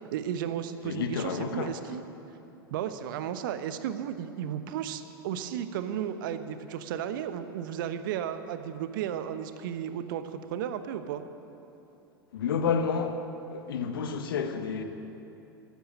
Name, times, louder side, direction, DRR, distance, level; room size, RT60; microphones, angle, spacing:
voice 1, 0.1-2.0 2.7-11.2, right 9 dB, 60° right, 1.1 m, -34 dB
voice 2, 0.8-1.7 12.3-13.2 13.5-14.8, left 6 dB, 65° left, 1.4 m, -30 dB
14.5 x 9.7 x 9.9 m
figure-of-eight pair, 90°, 13 cm